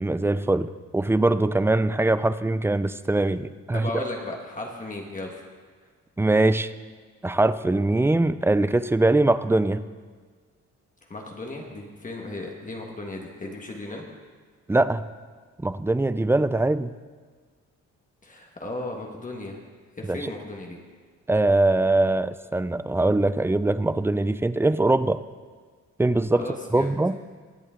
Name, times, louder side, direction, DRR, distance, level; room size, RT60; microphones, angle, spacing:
voice 1, 0.0-3.9 6.2-6.7 7.2-9.8 14.7-15.0 15.6-16.9 20.1-20.2 21.3-25.2 26.0-26.4 26.7-27.2, right 2 dB, 10° right, 14 dB, 0.4 m, -22 dB
voice 2, 3.7-5.4 11.1-14.0 18.2-19.6 20.0-20.8 26.3-26.9, left 2 dB, 25° left, 0 dB, 1.6 m, -35 dB
21.5 x 8.3 x 3.8 m, 1.5 s
cardioid pair, 95°, 29 cm